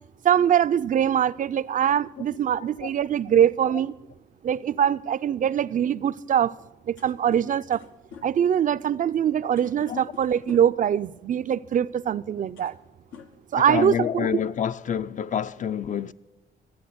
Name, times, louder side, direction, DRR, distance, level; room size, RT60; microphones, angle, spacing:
voice 1, 0.2-3.9 4.4-6.5 6.9-7.8 8.2-12.7 13.5-14.3, right 9 dB, 40° right, 0.4 m, -23 dB
sound 1, 7.0-10.9 11.9-12.0 12.4-12.9 13.1-14.0, left 6 dB, 90° left, 1.2 m, -47 dB
voice 2, 13.6-16.1, left 8 dB, 40° left, 0.5 m, -28 dB
13.5 x 8.6 x 7.9 m
cardioid pair, 90°, 20 cm